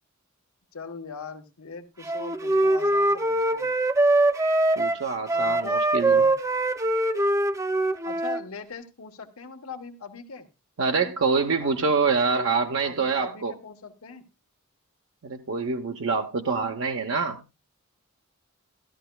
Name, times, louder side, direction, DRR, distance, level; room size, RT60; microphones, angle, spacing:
voice 1, 0.7-3.7 5.3-6.3 8.0-10.5 11.6-12.2 12.4-14.2, left 5 dB, 80° left, 1.2 m, -41 dB
Wind instrument woodwind instrument, 2.1-8.4, right 2 dB, 15° right, 0.5 m, -23 dB
voice 2, 4.8-6.2 10.8-13.5 15.2-17.4, right 4 dB, 65° right, 0.7 m, -26 dB
14.0 x 12.5 x 2.2 m
head